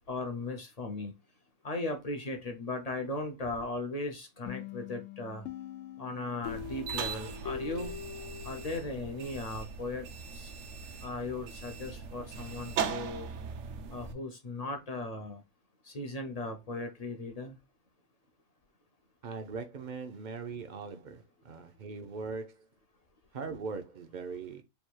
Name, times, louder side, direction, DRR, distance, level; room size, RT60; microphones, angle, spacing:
voice 1, 0.1-1.1 1.6-5.4 6.0-7.9 8.4-10.5 11.0-13.3 13.9-15.4 15.8-17.6, left 2 dB, 45° left, 0.5 m, -37 dB
sound 1, 4.5-9.1, left 9 dB, 85° left, 1.0 m, -43 dB
sound 2, 6.4-14.1, right 6 dB, 75° right, 0.9 m, -39 dB
voice 2, 19.2-22.7 23.3-24.6, right 4 dB, 50° right, 0.6 m, -40 dB
3.4 x 2.3 x 4.4 m
omnidirectional pair, 1.3 m